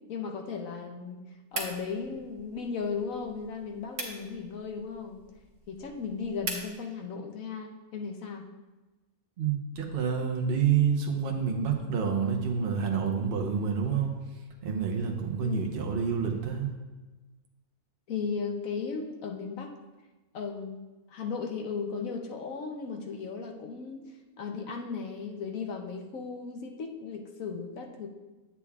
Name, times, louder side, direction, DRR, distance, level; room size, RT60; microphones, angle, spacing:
voice 1, 0.1-1.2 1.5-5.2 5.7-8.5 15.4-15.7 18.1-19.7 20.3-20.8 21.1-28.1, left 5 dB, 65° left, 3 dB, 1.1 m, -36 dB
sound 1, 1.5-6.7, right 3 dB, 75° right, 1.7 m, -42 dB
voice 2, 9.4-16.7, right 6 dB, 45° right, 0 dB, 0.9 m, -28 dB
8.3 x 8.3 x 2.4 m, 1.2 s
omnidirectional pair, 1.6 m